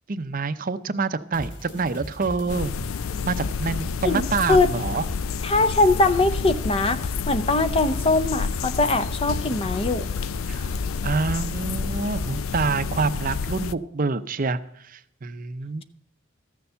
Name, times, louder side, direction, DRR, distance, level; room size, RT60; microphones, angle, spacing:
voice 1, 0.1-2.7 3.2-5.0 10.5-10.7 11.0-14.6 14.9-15.8, right 4 dB, 40° right, 13 dB, 0.6 m, -27 dB
sound 1, 1.3-12.6, left 1 dB, 60° left, 2.4 m, -39 dB
sound 2, 2.5-13.7, left 5 dB, 85° left, 0.4 m, -29 dB
voice 2, 4.0-4.7 5.4-10.1, left 2 dB, 25° left, 13 dB, 0.6 m, -22 dB
14.0 x 6.9 x 6.8 m, 0.71 s
head